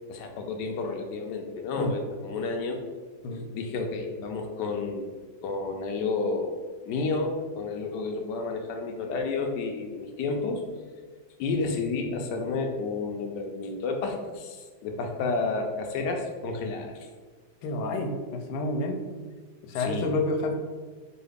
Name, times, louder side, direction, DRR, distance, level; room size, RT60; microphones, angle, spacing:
voice 1, 0.1-2.8 3.5-5.1 5.4-6.5 6.8-10.6 11.4-16.9 19.8-20.1, left 3 dB, 70° left, 3 dB, 1.1 m, -31 dB
voice 2, 17.6-19.1 19.6-20.5, left 2 dB, 90° left, 4 dB, 1.4 m, -29 dB
5.5 x 2.3 x 3.4 m, 1.5 s
omnidirectional pair, 2.1 m